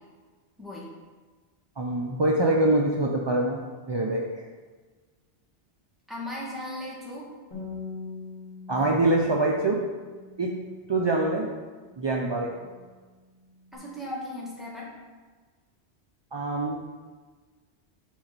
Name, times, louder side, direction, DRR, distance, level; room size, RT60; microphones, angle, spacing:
voice 1, 1.8-4.4 8.7-9.8 10.4-10.5 10.9-11.5 12.0-12.5 16.3-16.8, right 2 dB, 40° right, 0 dB, 0.3 m, -24 dB
voice 2, 6.1-7.3 8.8-9.1 13.7-14.9, left 1 dB, ahead, -6 dB, 1.9 m, -37 dB
Bass guitar, 7.5-13.8, left 4 dB, 45° left, 2.4 m, -44 dB
6.3 x 4.3 x 6.6 m, 1.4 s
omnidirectional pair, 1.2 m